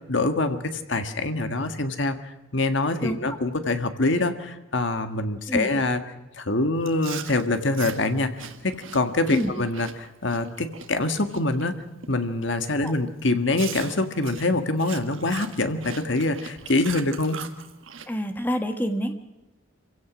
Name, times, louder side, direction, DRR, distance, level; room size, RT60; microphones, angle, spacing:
voice 1, 0.1-2.1 2.5-6.0 6.4-11.8 12.1-17.4, left 2 dB, 60° left, 8 dB, 1.7 m, -25 dB
Chewing mastication, 6.8-11.7 12.0-12.3 12.8-13.0 13.5-18.1, right 7 dB, 70° right, 1.7 m, -40 dB
voice 2, 18.1-19.1, equal, 10° left, 6 dB, 1.5 m, -27 dB
27.0 x 16.5 x 6.2 m, 1.0 s
head